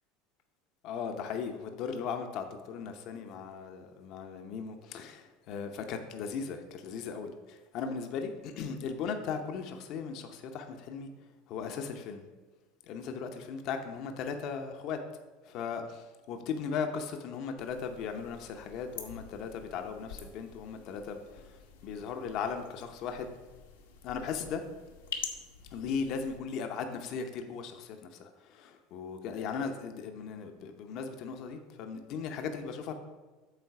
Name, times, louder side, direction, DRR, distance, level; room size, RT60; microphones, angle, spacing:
voice 1, 0.8-11.1 11.5-12.3 12.9-15.0 15.4-21.6 21.8-23.3 24.0-24.6 25.7-33.0, left 6 dB, 55° left, 5 dB, 0.7 m, -37 dB
sound 1, 17.6-26.4, left 7 dB, 85° left, 1.0 m, -47 dB
8.1 x 3.8 x 5.8 m, 1.3 s
hypercardioid pair, 80°, 0 cm